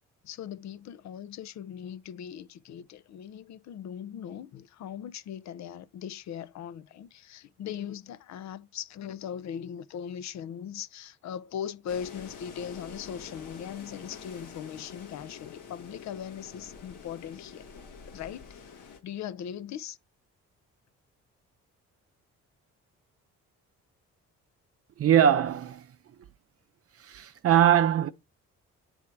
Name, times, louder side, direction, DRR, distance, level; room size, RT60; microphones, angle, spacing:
voice 1, 0.2-17.7 18.1-20.0, left 9 dB, 65° left, 0.6 m, -39 dB
sound 1, 11.9-19.0, left 6 dB, 90° left, 1.7 m, -46 dB
voice 2, 25.0-25.9 27.0-28.1, right 10 dB, 50° right, 0.5 m, -22 dB
8.3 x 3.6 x 4.5 m
cardioid pair, 90°, 30 cm